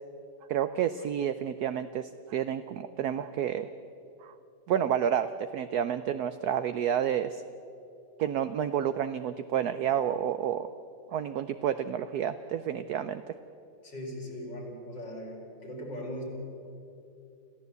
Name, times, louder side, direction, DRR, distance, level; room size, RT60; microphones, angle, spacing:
voice 1, 0.5-3.7 4.2-4.3 4.7-7.4 8.2-10.7 11.1-13.3, right 9 dB, 65° right, 11 dB, 1.0 m, -30 dB
voice 2, 13.8-16.2, equal, 60° left, -2 dB, 5.2 m, -39 dB
26.5 x 15.0 x 8.2 m, 2.7 s
omnidirectional pair, 2.1 m